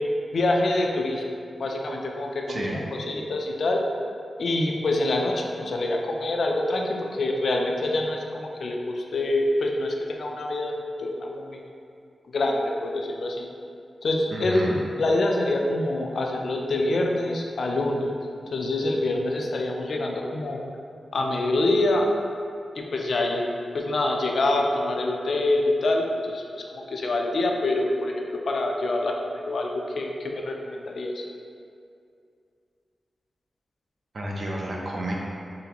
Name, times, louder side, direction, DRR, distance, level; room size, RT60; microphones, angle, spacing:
voice 1, 0.3-1.2 1.6-2.6 3.1-3.8 4.4-10.7 11.0-11.7 12.3-13.5 14.0-18.1 18.5-20.6 21.1-22.1 22.7-23.5 23.7-26.4 26.7-28.1 28.5-29.7 30.0-31.2, left 2 dB, 65° left, 1 dB, 0.4 m, -25 dB
voice 2, 2.5-2.8 14.3-14.8 34.1-35.1, right 1 dB, 50° right, -2 dB, 0.6 m, -30 dB
3.8 x 3.3 x 2.9 m, 2.4 s
wide cardioid pair, 130°, 0 cm